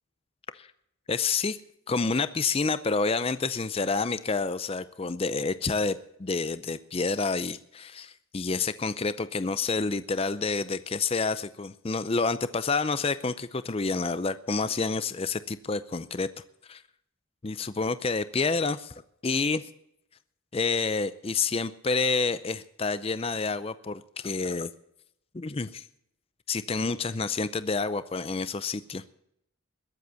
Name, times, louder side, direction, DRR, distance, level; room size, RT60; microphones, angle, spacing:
voice 1, 1.1-1.6 1.9-16.3 16.7-16.8 17.4-18.9 19.2-19.6 20.5-24.7 25.3-25.8 26.5-29.1, left 4 dB, 25° left, 13 dB, 0.5 m, -28 dB
21.5 x 7.9 x 6.9 m, 0.75 s
head